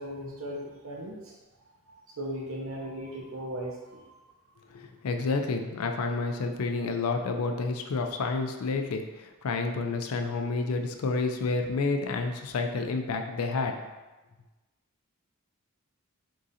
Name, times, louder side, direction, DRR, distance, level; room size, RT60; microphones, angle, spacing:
voice 1, 0.0-1.3 1.9-4.0, equal, 70° right, -2 dB, 0.9 m, -37 dB
voice 2, 4.7-13.8, left 3 dB, 75° left, 5 dB, 0.4 m, -29 dB
3.7 x 2.5 x 4.1 m, 1.2 s
head